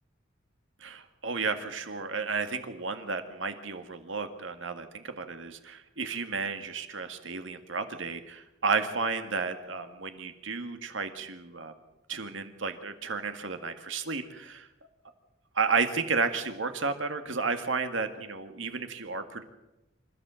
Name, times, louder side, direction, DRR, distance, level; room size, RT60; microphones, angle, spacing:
voice 1, 0.8-11.7 12.1-14.7 15.6-19.4, right 4 dB, 75° right, 7 dB, 1.9 m, -32 dB
26.5 x 14.5 x 7.7 m, 0.98 s
head